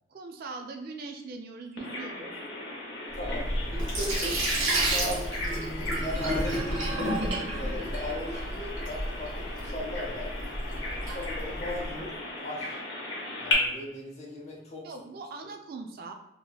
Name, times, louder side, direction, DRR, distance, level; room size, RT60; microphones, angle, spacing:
voice 1, 0.1-2.3 14.8-16.1, right 3 dB, 50° right, 5 dB, 0.3 m, -41 dB
Bird vocalization bird call bird song, 1.8-13.5, left 2 dB, 75° left, 0.8 m, -37 dB
voice 2, 3.1-5.2 5.7-7.3 7.5-10.3 10.7-12.8 13.4-14.9 15.4-15.5, left 1 dB, 35° left, -2 dB, 0.7 m, -38 dB
Sink (filling or washing), 3.1-11.9, right 1 dB, 80° right, 1.1 m, -31 dB
2.9 x 2.9 x 2.3 m, 0.87 s
head